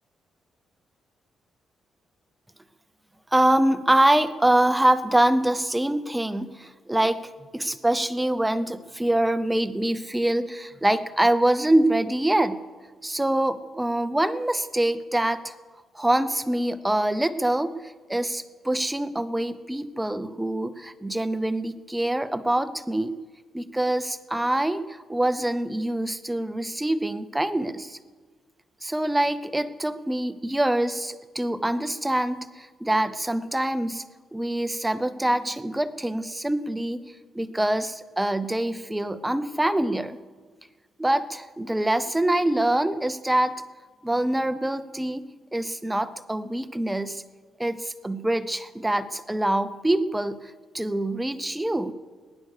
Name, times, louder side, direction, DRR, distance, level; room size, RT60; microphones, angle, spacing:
voice 1, 3.3-12.6 13.0-15.6 15.9-23.2 23.5-28.0 28.8-34.1 34.3-37.0 37.3-40.2 41.0-43.6 44.0-47.2 47.6-51.9, right 1 dB, 5° right, 13 dB, 0.6 m, -25 dB
20.0 x 10.5 x 6.6 m, 1.4 s
cardioid pair, 170°, 0 cm